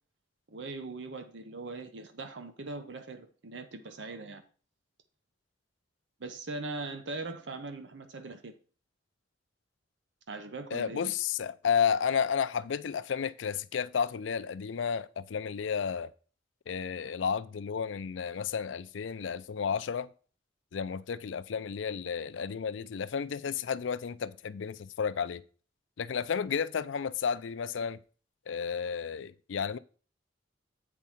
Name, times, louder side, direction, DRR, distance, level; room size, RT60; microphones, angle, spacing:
voice 1, 0.5-4.4 6.2-8.5 10.3-11.1, right 3 dB, 70° right, 0.8 m, -40 dB
voice 2, 10.7-16.1 16.7-20.1 20.7-25.4 26.0-28.0 28.5-29.8, left 7 dB, 85° left, 0.4 m, -32 dB
8.0 x 4.6 x 5.7 m
head